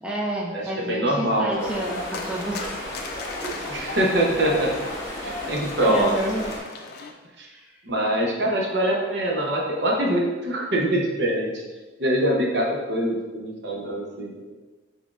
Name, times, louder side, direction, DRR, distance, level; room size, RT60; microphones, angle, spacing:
voice 1, 0.0-3.0 3.4-3.5 5.8-6.6 7.4-7.8, right 1 dB, 5° right, -3 dB, 0.4 m, -30 dB
voice 2, 0.5-1.7 3.7-4.7 5.2-6.1 7.4-7.5 7.8-11.6 12.0-14.5, right 1 dB, 60° right, -1 dB, 0.8 m, -24 dB
sound 1, 1.5-7.1, left 3 dB, 55° left, 0.5 m, -37 dB
sound 2, 1.6-6.6, left 1 dB, 15° left, 1.1 m, -34 dB
6.0 x 3.6 x 2.4 m, 1.2 s
head